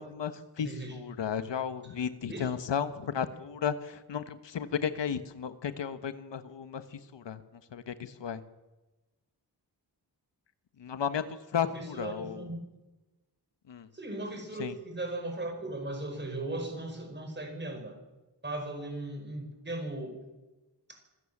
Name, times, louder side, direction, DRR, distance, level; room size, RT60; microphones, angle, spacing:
voice 1, 0.0-7.4 7.7-8.4 10.8-11.3 11.5-12.5 13.7-13.9 14.6-14.8, left 7 dB, 85° left, 11 dB, 1.3 m, -34 dB
voice 2, 0.6-1.0 2.3-2.5 11.6-12.6 13.9-18.0 18.4-20.1, right 2 dB, 25° right, 5 dB, 5.1 m, -37 dB
26.0 x 16.5 x 7.4 m, 1.1 s
wide cardioid pair, 165°, 42 cm